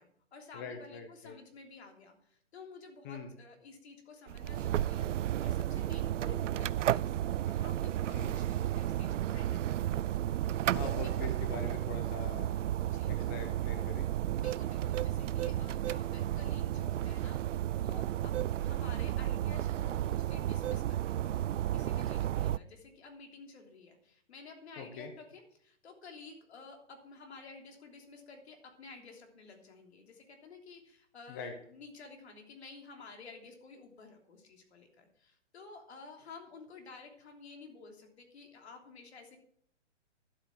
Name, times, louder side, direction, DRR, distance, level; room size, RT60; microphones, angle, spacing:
voice 1, 0.0-5.1 5.4-10.0 10.8-11.1 12.8-13.1 14.4-18.3 18.6-21.3 21.7-39.4, left 4 dB, 60° left, 3 dB, 3.2 m, -52 dB
voice 2, 0.5-1.4 3.0-3.3 8.1-8.3 10.7-12.5 13.1-14.1 24.8-25.1 31.3-31.5, left 5 dB, 15° left, 6 dB, 0.7 m, -43 dB
sound 1, 4.3-22.6, right 12 dB, 80° right, 0.5 m, -33 dB
12.0 x 8.3 x 6.0 m, 0.65 s
hypercardioid pair, 160°, 36 cm